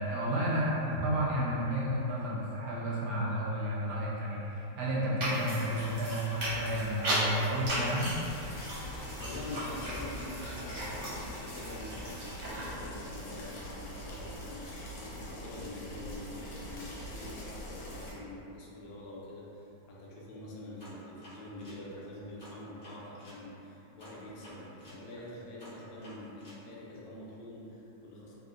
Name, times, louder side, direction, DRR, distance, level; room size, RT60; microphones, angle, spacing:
voice 1, 0.0-8.1, equal, 70° right, -6 dB, 1.1 m, -31 dB
Gross Chewing with mouth open, 5.2-12.7, equal, 50° right, 0.6 m, -36 dB
sound 1, 8.1-18.1, equal, 85° left, 1.4 m, -43 dB
voice 2, 8.5-24.6 24.9-28.4, left 1 dB, 70° left, -6 dB, 1.2 m, -45 dB
sound 2, 20.8-23.4 24.0-26.6, equal, 55° left, 0.4 m, -52 dB
3.7 x 2.1 x 2.4 m, 2.9 s
omnidirectional pair, 2.1 m